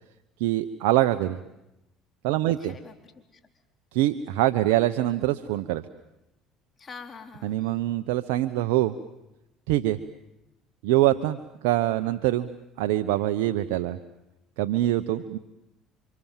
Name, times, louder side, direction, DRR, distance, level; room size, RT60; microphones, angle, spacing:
voice 1, 0.4-1.4 2.2-2.7 3.9-5.8 7.4-8.9 9.7-10.0 10.8-11.4 11.6-12.5 12.8-14.0 14.6-15.4, right 15 dB, 85° right, 9 dB, 0.9 m, -24 dB
voice 2, 2.6-3.4 6.8-7.7, left 5 dB, 30° left, 5 dB, 4.0 m, -45 dB
30.0 x 26.0 x 7.4 m, 0.89 s
supercardioid pair, 90°, 0 cm